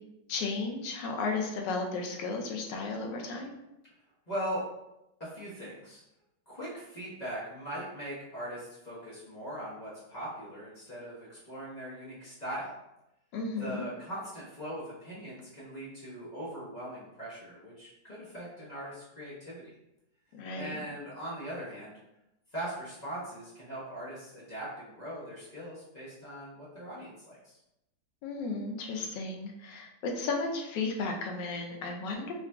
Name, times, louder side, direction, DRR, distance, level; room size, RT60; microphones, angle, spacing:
voice 1, 0.3-3.5 13.3-13.9 20.3-20.8 28.2-32.3, left 3 dB, 75° left, 1 dB, 1.3 m, -34 dB
voice 2, 4.3-4.6 5.2-6.0 6.5-12.7 13.6-19.7 20.5-22.0 22.5-27.6, equal, 30° left, -9 dB, 0.9 m, -40 dB
4.8 x 2.5 x 2.2 m, 0.89 s
omnidirectional pair, 2.0 m